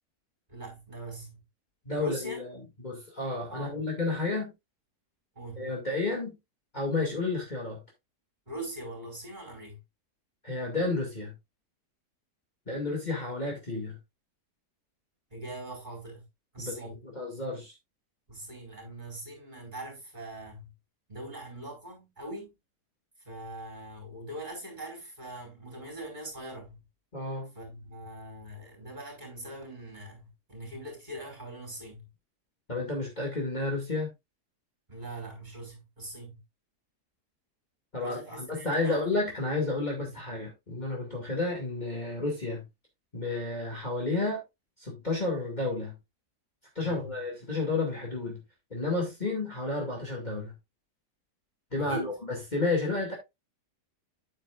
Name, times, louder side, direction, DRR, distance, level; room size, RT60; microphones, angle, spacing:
voice 1, 0.5-1.4 2.0-2.4 3.5-3.8 5.3-5.7 8.5-9.8 15.3-16.2 16.5-17.0 18.3-20.7 21.1-22.5 23.2-26.8 27.5-32.1 34.9-36.4 38.0-39.6 40.0-40.2 46.8-47.2 51.8-52.2, right 1 dB, 25° right, 4.5 m, -42 dB
voice 2, 1.9-2.5 2.8-4.5 5.6-6.4 6.7-7.8 10.4-11.3 12.7-14.0 16.6-17.7 27.1-27.5 32.7-34.1 37.9-42.6 43.1-44.4 44.8-45.9 46.8-48.4 48.7-50.5 51.7-53.1, left 3 dB, 25° left, 2.4 m, -31 dB
8.9 x 8.3 x 2.4 m
omnidirectional pair, 1.7 m